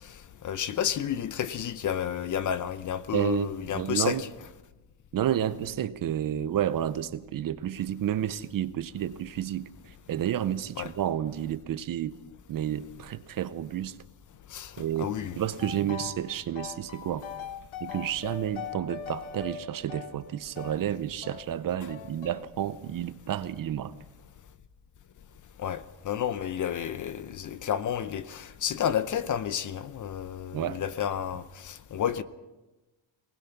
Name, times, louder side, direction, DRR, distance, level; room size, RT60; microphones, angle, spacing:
voice 1, 0.4-4.2 10.8-10.9 14.5-14.7 15.0-15.4 25.6-32.2, left 9 dB, 40° left, 0.7 m, -31 dB
voice 2, 3.1-3.5 3.7-4.2 5.1-12.2 12.5-14.0 14.8-17.3 17.8-23.9 30.5-30.8, right 11 dB, 45° right, 0.8 m, -30 dB
sound 1, 15.6-16.2 16.5-20.8 21.2-21.5 21.9-22.5, left 7 dB, 80° left, 2.1 m, -40 dB
22.5 x 19.5 x 5.9 m
cardioid pair, 150°, 48 cm